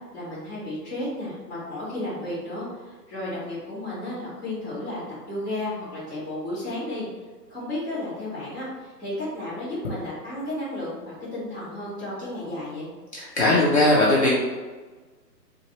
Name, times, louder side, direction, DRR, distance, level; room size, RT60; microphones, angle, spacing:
voice 1, 0.1-5.0 5.3-7.1 7.5-12.9, left 1 dB, 15° left, -9 dB, 1.0 m, -33 dB
voice 2, 13.1-14.3, left 2 dB, 40° left, -8 dB, 0.7 m, -19 dB
4.1 x 2.5 x 3.0 m, 1.3 s
hypercardioid pair, 170°, 50 cm